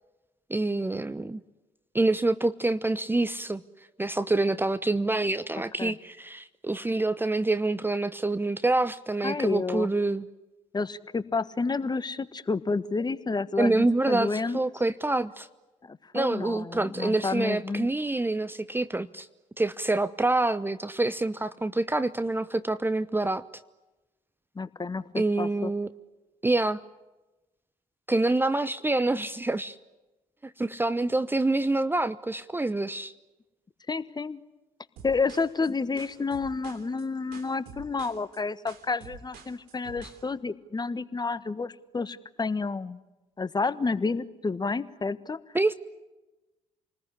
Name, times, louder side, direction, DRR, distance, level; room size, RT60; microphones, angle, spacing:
voice 1, 0.5-1.4 1.9-3.6 4.0-10.3 13.6-15.5 16.1-19.3 19.6-23.4 25.1-25.9 26.4-26.8 28.1-29.8 30.4-33.1 45.5-45.7, right 2 dB, 15° right, 14 dB, 0.8 m, -26 dB
voice 2, 9.2-9.9 10.7-14.6 15.8-17.9 24.5-25.7 33.9-34.4 35.0-43.0 43.4-45.4, left 4 dB, 25° left, 15 dB, 1.4 m, -30 dB
sound 1, 35.0-40.2, right 6 dB, 70° right, 2.9 m, -48 dB
29.0 x 20.0 x 9.9 m, 1.1 s
hypercardioid pair, 50°, 16 cm